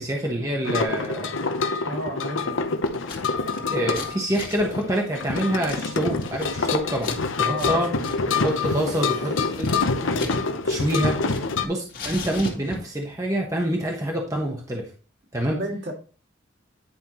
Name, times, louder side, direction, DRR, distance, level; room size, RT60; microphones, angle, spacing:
voice 1, 0.0-1.3 3.7-7.1 7.4-7.9 8.3-9.7 10.6-11.1 11.6-14.9 15.3-15.6, right 1 dB, 15° right, 0 dB, 1.0 m, -26 dB
sound 1, 0.6-11.7, left 4 dB, 75° left, 0.8 m, -26 dB
voice 2, 1.8-2.6 3.7-4.2 7.4-8.0 15.4-15.9, right 1 dB, 55° right, 0 dB, 2.4 m, -33 dB
Scissors, 2.9-3.2 3.5-7.2 7.5-7.7 8.0-8.2 8.5-10.4 10.7-11.6 11.9-13.0, left 3 dB, 50° left, 1.9 m, -37 dB
Motorcycle / Engine, 7.2-12.3, right 1 dB, 35° right, 1.8 m, -44 dB
9.9 x 5.5 x 3.0 m, 0.37 s
head